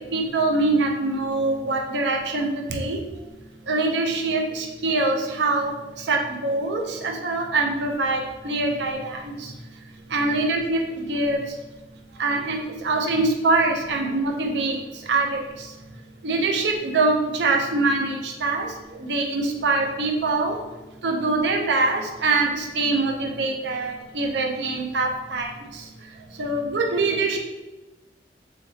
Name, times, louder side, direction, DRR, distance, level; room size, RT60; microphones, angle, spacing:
voice 1, 0.1-3.0 3.7-5.7 6.1-9.5 10.1-11.4 12.2-14.8 15.1-15.4 16.2-18.7 19.0-20.6 21.0-25.5 26.4-27.4, right 3 dB, 85° right, 2 dB, 0.6 m, -24 dB
3.8 x 3.4 x 2.8 m, 1.1 s
head